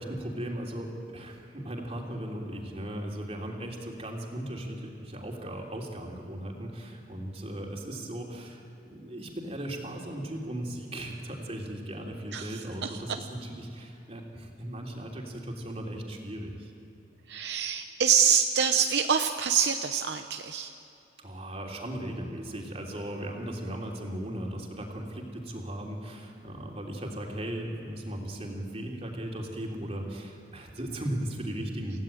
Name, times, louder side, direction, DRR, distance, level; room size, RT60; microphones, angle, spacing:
voice 1, 0.0-16.7 21.2-32.0, right 1 dB, 35° right, 0 dB, 3.4 m, -37 dB
voice 2, 12.3-13.3 17.3-20.7, right 7 dB, 70° right, 6 dB, 0.8 m, -26 dB
29.0 x 16.0 x 9.0 m, 3.0 s
head